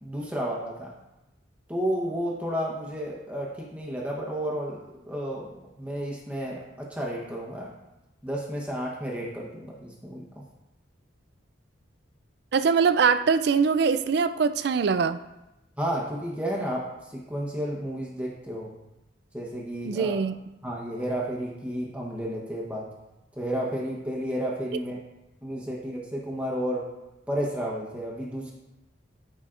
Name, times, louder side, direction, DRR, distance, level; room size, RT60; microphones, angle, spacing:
voice 1, 0.0-0.9 1.7-5.5 5.8-7.7 8.2-10.2 15.8-18.7 19.3-20.2 20.6-22.9 23.4-25.0 25.4-26.8 27.3-28.5, equal, 5° right, -3 dB, 1.0 m, -32 dB
voice 2, 12.5-15.2 19.8-20.3, right 5 dB, 55° right, 12 dB, 0.3 m, -22 dB
13.0 x 5.0 x 2.5 m, 0.97 s
head